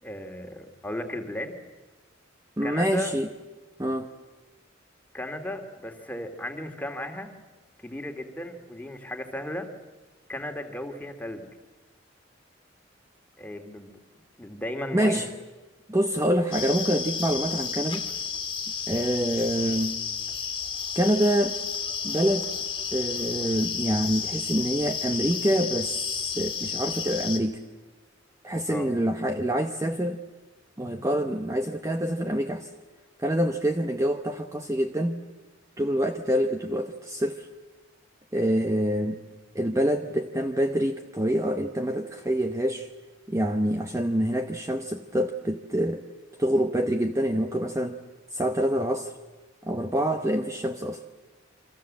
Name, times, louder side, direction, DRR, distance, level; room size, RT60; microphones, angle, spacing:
voice 1, 0.0-1.6 2.6-3.1 5.1-7.3 7.8-9.7 10.3-11.4 13.4-13.9 14.4-15.3 28.7-28.9, left 1 dB, 10° left, 5 dB, 2.2 m, -35 dB
voice 2, 2.6-3.3 3.8-4.1 14.9-15.3 15.9-18.1 18.9-20.0 20.9-21.6 22.0-22.5 22.9-27.6 28.4-30.2 30.8-32.7 33.2-35.2 35.8-37.5 38.3-39.2 39.5-42.9 43.3-46.0 46.4-48.0 48.3-49.1 49.6-51.0, equal, 15° right, 6 dB, 0.9 m, -26 dB
sound 1, 16.5-27.4, left 6 dB, 25° left, 2.2 m, -32 dB
28.5 x 24.5 x 7.5 m, 1.2 s
head